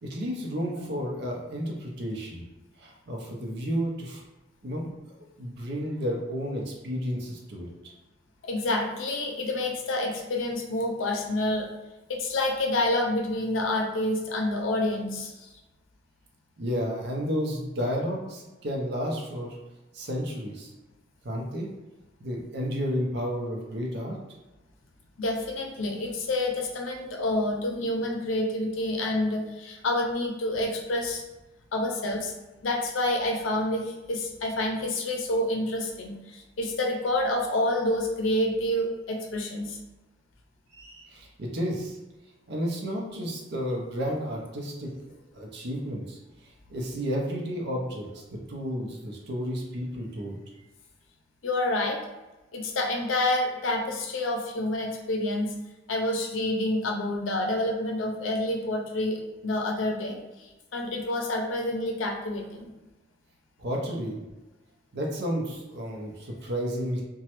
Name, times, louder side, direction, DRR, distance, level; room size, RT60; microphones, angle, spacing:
voice 1, 0.0-2.4 2.8-4.2 4.6-4.9 5.4-7.9 16.6-19.6 19.9-20.7 21.2-21.7 22.2-24.2 40.7-42.0 42.5-44.9 45.3-50.4 63.6-64.2 64.9-67.0, equal, 60° right, -1 dB, 0.6 m, -32 dB
voice 2, 8.4-11.7 12.1-15.5 25.2-31.2 31.7-32.3 32.6-39.8 51.4-52.0 52.5-55.5 55.9-62.7, left 1 dB, 80° left, 1 dB, 0.5 m, -28 dB
3.0 x 2.2 x 2.9 m, 1.1 s
head